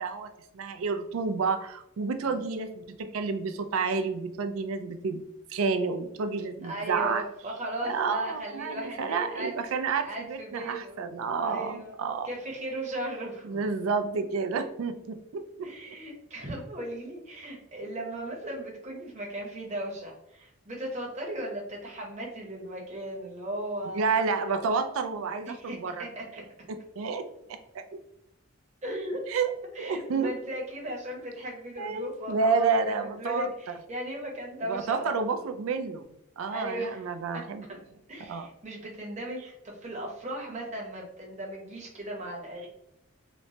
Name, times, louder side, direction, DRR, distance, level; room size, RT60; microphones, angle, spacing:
voice 1, 0.0-5.2 5.5-7.2 7.8-12.3 13.4-15.4 23.9-26.1 27.0-27.8 29.3-29.5 29.8-30.3 31.8-33.5 34.7-36.0 36.4-37.7 38.3-38.5, right 4 dB, 90° right, 8 dB, 0.4 m, -30 dB
voice 2, 6.6-9.5 10.0-11.0 11.4-12.0 12.2-13.6 15.6-24.2 25.5-26.4 28.8-29.3 29.7-35.5 36.5-37.4 38.1-42.7, right 1 dB, 35° right, -2 dB, 0.8 m, -37 dB
3.0 x 2.1 x 2.6 m, 0.83 s
head